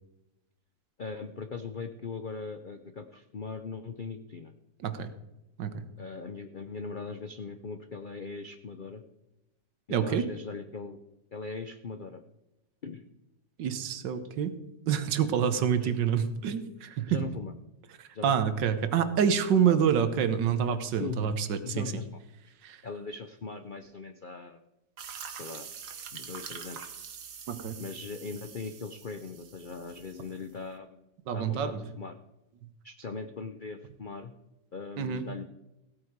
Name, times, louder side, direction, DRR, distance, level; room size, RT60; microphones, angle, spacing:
voice 1, 1.0-4.5 6.0-9.0 9.9-11.0 11.3-12.2 12.8-13.0 14.4-14.5 15.8-15.9 17.1-17.5 18.1-18.5 19.7-19.8 20.9-21.2 21.6-22.2 22.5-22.6 22.8-24.6 25.4-25.7 26.1-26.9 27.8-31.0 31.3-32.1 32.8-34.3 34.7-35.4, left 4 dB, 70° left, 8 dB, 0.4 m, -40 dB
voice 2, 9.9-10.3 13.6-14.5 14.9-17.2 18.0-21.9 22.6-22.8 27.5-27.8 31.3-31.8 35.0-35.2, right 8 dB, 85° right, 11 dB, 1.7 m, -27 dB
sound 1, 25.0-30.5, right 7 dB, 65° right, 1.7 m, -45 dB
16.0 x 8.7 x 4.7 m, 0.95 s
omnidirectional pair, 1.9 m